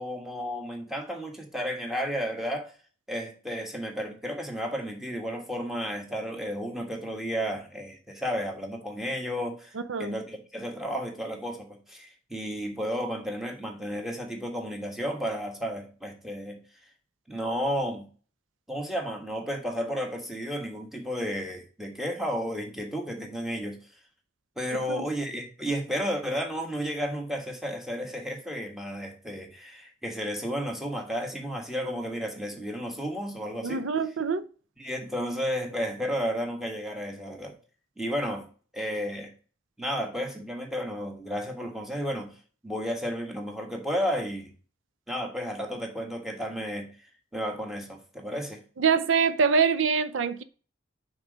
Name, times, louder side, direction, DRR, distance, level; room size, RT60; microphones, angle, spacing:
voice 1, 0.0-2.7 3.1-16.6 17.3-18.1 18.7-23.8 24.6-33.9 34.8-37.6 38.0-38.5 38.7-39.3 39.8-42.3 42.6-44.5 45.1-46.9 47.3-48.6, equal, ahead, 1.4 m, -32 dB
voice 2, 33.6-34.5 48.8-50.4, right 5 dB, 90° right, 0.5 m, -24 dB
6.0 x 3.9 x 6.2 m
head